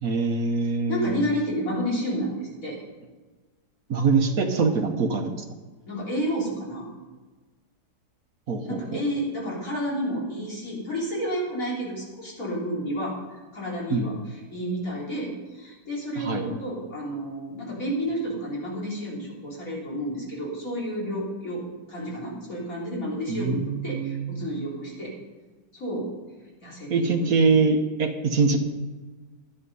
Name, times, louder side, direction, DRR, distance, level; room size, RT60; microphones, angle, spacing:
voice 1, 0.0-1.2 3.9-5.3 8.5-9.0 13.9-14.2 16.2-16.5 23.3-24.5 26.9-28.6, right 4 dB, 65° right, 5 dB, 1.4 m, -24 dB
voice 2, 0.9-2.8 5.9-6.9 8.6-25.1 25.7-26.1 26.6-27.6, equal, 55° left, -5 dB, 4.1 m, -31 dB
11.5 x 11.0 x 5.4 m, 1.3 s
omnidirectional pair, 1.7 m